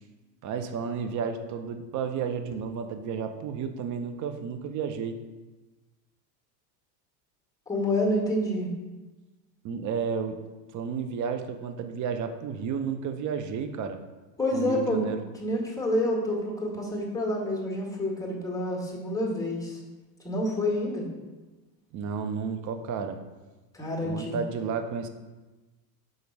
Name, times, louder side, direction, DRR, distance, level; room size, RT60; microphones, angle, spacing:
voice 1, 0.4-5.2 9.6-10.4 10.7-14.0 14.5-15.2 21.9-23.2 24.0-25.1, right 6 dB, 35° right, 8 dB, 0.7 m, -32 dB
voice 2, 7.7-8.7 14.4-15.0 15.4-19.8 20.2-21.1 23.7-24.4, left 1 dB, 5° left, -2 dB, 1.8 m, -28 dB
5.3 x 3.9 x 6.0 m, 1.2 s
hypercardioid pair, 100°, 49 cm